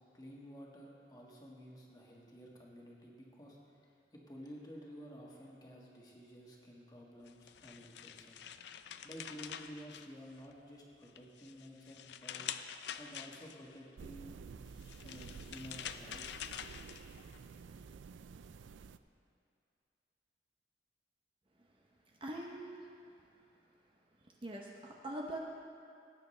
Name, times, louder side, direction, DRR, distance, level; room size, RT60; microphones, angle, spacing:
voice 1, 0.1-8.4 9.0-12.4 13.0-14.4 15.0-16.2, equal, 20° left, -3 dB, 1.6 m, -52 dB
sound 1, 7.3-10.6 11.0-13.8 14.7-17.4, left 9 dB, 65° left, 0.4 m, -46 dB
sound 2, 14.0-19.0, right 5 dB, 85° right, 0.4 m, -51 dB
voice 2, 22.2-22.8 24.4-25.4, right 1 dB, 30° right, -1 dB, 0.7 m, -42 dB
18.0 x 9.2 x 3.3 m, 2.5 s
head